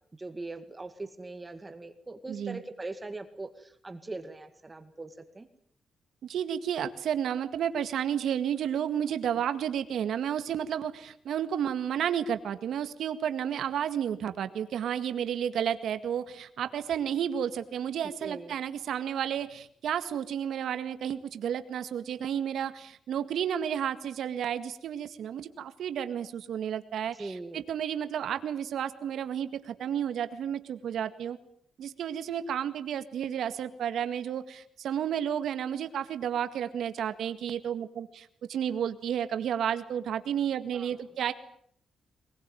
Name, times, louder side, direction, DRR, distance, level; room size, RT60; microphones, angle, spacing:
voice 1, 0.2-5.5 18.2-18.6 27.2-27.6 40.7-40.9, right 2 dB, 15° right, 9 dB, 2.0 m, -41 dB
voice 2, 2.3-2.6 6.2-31.4 31.8-41.3, right 9 dB, 75° right, 11 dB, 1.9 m, -32 dB
22.5 x 21.5 x 9.3 m, 0.64 s
wide cardioid pair, 160°, 0 cm